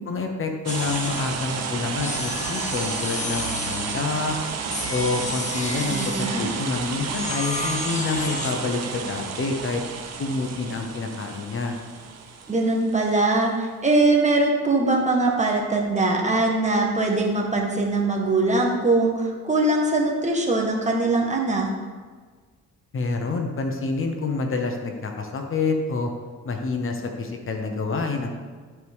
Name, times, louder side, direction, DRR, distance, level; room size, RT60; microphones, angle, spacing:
voice 1, 0.1-4.3 4.9-9.8 10.2-11.7 22.9-26.1 26.4-28.3, left 3 dB, 45° left, 3 dB, 1.1 m, -27 dB
sound 1, 0.7-1.4 2.0-4.1 4.7-6.4 7.0-8.6, left 3 dB, 25° left, 0.9 m, -32 dB
sound 2, 0.7-13.2, right 5 dB, 55° right, 1.0 m, -32 dB
voice 2, 5.9-6.5 12.5-21.7, right 2 dB, 25° right, 0 dB, 1.6 m, -22 dB
12.5 x 4.9 x 3.6 m, 1.5 s
cardioid pair, 90°, 30 cm